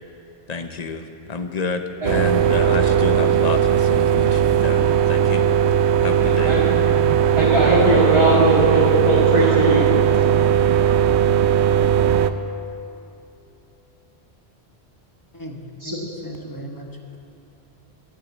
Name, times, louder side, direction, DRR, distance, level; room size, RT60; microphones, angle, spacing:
voice 1, 0.5-5.4 6.0-6.5, left 4 dB, 40° left, 7 dB, 0.9 m, -29 dB
sound 1, 2.0-12.3, right 9 dB, 85° right, 0.9 m, -18 dB
voice 2, 6.2-6.7 7.4-9.9 15.8-16.0, right 1 dB, 25° right, -7 dB, 1.9 m, -19 dB
voice 3, 15.3-16.9, equal, 20° left, 1 dB, 1.2 m, -36 dB
11.5 x 10.5 x 8.2 m, 2.7 s
omnidirectional pair, 1.1 m